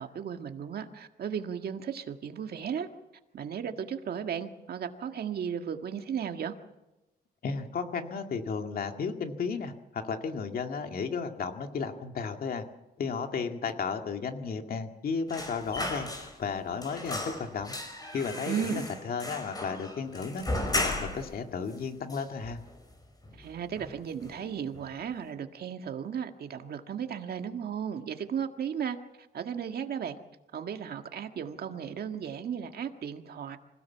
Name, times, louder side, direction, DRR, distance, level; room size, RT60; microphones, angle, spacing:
voice 1, 0.0-2.9 3.3-6.5 18.4-18.8 23.4-29.0 29.3-30.2 30.5-33.6, right 8 dB, 65° right, 6 dB, 1.8 m, -35 dB
voice 2, 7.4-12.7 13.0-16.1 16.4-17.7 18.1-22.6, left 5 dB, 60° left, 5 dB, 2.2 m, -34 dB
sound 1, 15.3-16.5 16.8-21.3 21.7-21.8 22.1-22.9 23.2-23.4 23.8-24.4 24.7-24.9, left 2 dB, 20° left, 4.6 m, -35 dB
26.5 x 16.5 x 7.3 m, 0.96 s
wide cardioid pair, 145°, 17 cm